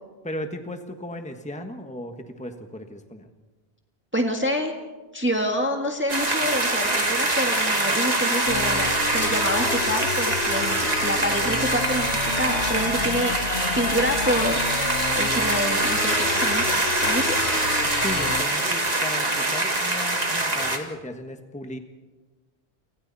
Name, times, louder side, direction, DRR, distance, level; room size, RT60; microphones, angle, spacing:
voice 1, 0.2-3.3 7.9-8.0 17.8-21.8, left 1 dB, 5° left, 5 dB, 1.4 m, -36 dB
voice 2, 4.1-4.7 5.1-12.1 12.4-13.3 13.8-14.6 15.2-16.6 17.0-17.4, equal, 10° right, 2 dB, 1.8 m, -27 dB
sound 1, 6.1-20.8, right 2 dB, 40° right, 2.1 m, -24 dB
sound 2, 8.5-18.5, left 6 dB, 85° left, 1.3 m, -31 dB
29.0 x 25.0 x 4.2 m, 1.2 s
omnidirectional pair, 1.1 m